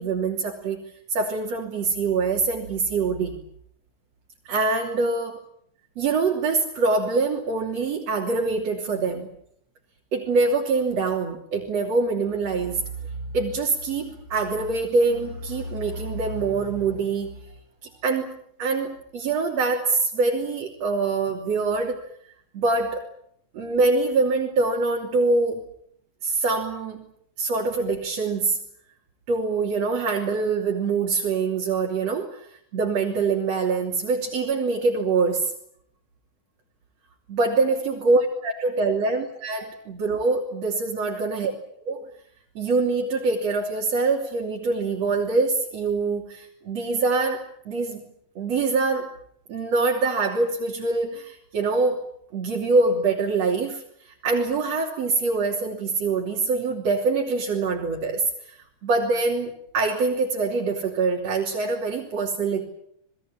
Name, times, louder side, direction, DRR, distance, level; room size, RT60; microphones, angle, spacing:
voice 1, 0.0-3.4 4.5-5.4 6.0-9.3 10.1-12.8 13.3-17.4 17.8-22.1 22.5-23.1 23.5-25.6 26.2-27.1 27.4-28.6 29.3-35.5 37.3-41.5 41.9-42.1 42.6-48.0 48.4-49.2 49.5-52.0 52.3-58.6 58.8-62.6, right 3 dB, 60° right, -1 dB, 4.2 m, -24 dB
28.5 x 21.0 x 8.9 m, 0.69 s
omnidirectional pair, 3.4 m